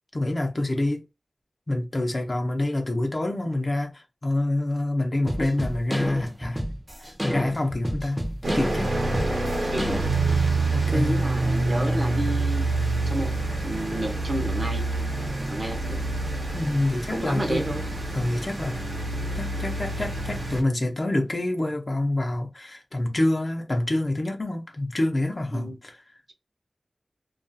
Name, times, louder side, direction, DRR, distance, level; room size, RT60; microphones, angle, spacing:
voice 1, 0.1-1.0 1.7-6.6 7.0-9.0 10.7-11.2 16.5-17.6 18.1-18.8 19.3-26.2, left 1 dB, 45° left, 0.6 m, -27 dB
sound 1, 5.3-10.4, equal, 10° right, 0.6 m, -31 dB
sound 2, 8.4-20.6, right 2 dB, 85° right, 0.8 m, -27 dB
voice 2, 9.7-10.1 10.9-12.7 13.1-13.3 13.6-14.8 15.5-16.0 17.1-17.8 25.5-25.8, right 1 dB, 45° right, 0.7 m, -30 dB
2.4 x 2.3 x 2.6 m
wide cardioid pair, 70°, 0 cm